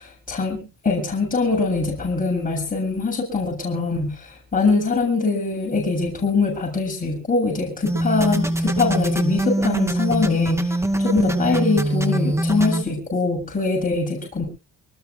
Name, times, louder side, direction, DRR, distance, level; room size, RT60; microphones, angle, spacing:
voice 1, 0.3-10.7 11.0-14.5, left 3 dB, 25° left, -1 dB, 7.8 m, -23 dB
sound 1, 7.9-12.8, right 1 dB, 10° right, 2.3 m, -23 dB
25.5 x 20.0 x 2.2 m, 0.33 s
cardioid pair, 90°, 30 cm